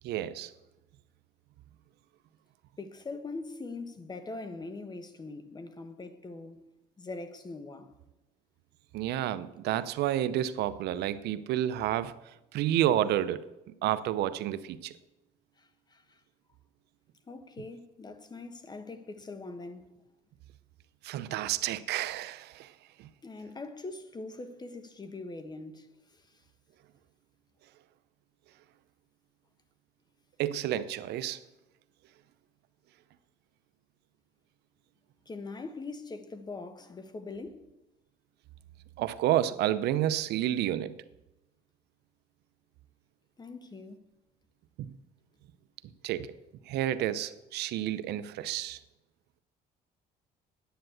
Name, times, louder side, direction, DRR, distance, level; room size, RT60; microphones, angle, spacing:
voice 1, 0.0-0.5 8.9-12.2 12.5-13.4 13.8-14.9 21.0-22.7 23.0-23.1 30.4-31.4 39.0-41.0 44.8-44.9 46.0-46.4 46.7-48.8, right 12 dB, 75° right, 0.7 m, -30 dB
voice 2, 2.8-6.7 7.0-7.9 15.6-16.2 17.3-19.9 23.2-26.4 35.2-37.6 43.4-44.0, left 3 dB, 25° left, 1.3 m, -42 dB
10.0 x 8.9 x 7.9 m
cardioid pair, 110°, 17 cm